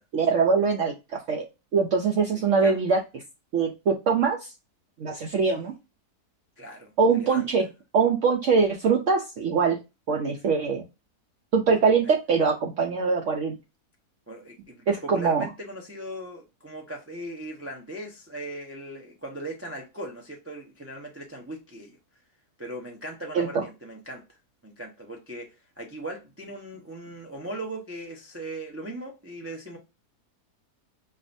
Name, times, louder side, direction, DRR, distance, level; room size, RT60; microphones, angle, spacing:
voice 1, 0.1-1.4 1.7-3.0 3.5-4.5 5.0-5.7 7.0-7.6 7.9-9.8 10.1-10.8 11.5-13.5 14.9-15.5 23.4-23.5, right 5 dB, 60° right, 0.8 m, -23 dB
voice 2, 2.3-2.8 5.4-5.6 6.6-7.5 12.0-12.1 14.3-22.0 22.6-24.4 24.6-29.8, right 1 dB, 20° right, 0.4 m, -39 dB
5.5 x 2.4 x 2.6 m
omnidirectional pair, 1.7 m